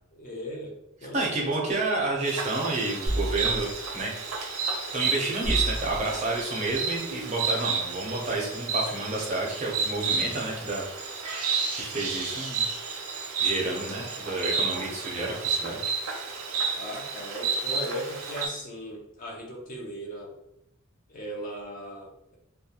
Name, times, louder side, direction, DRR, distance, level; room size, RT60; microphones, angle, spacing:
voice 1, 0.1-0.7 1.0-1.7 16.7-20.3 21.1-22.4, equal, 40° left, -1 dB, 0.5 m, -38 dB
voice 2, 1.1-3.7 3.9-4.1 4.9-10.9 11.8-12.7 13.4-15.9, right 2 dB, 35° right, -2 dB, 0.5 m, -30 dB
Insect, 2.2-18.5, right 5 dB, 85° right, 0.5 m, -31 dB
sound 1, 3.1-4.4 4.9-7.0 7.6-7.7, right 1 dB, 85° left, 0.8 m, -33 dB
2.3 x 2.1 x 2.8 m, 0.82 s
head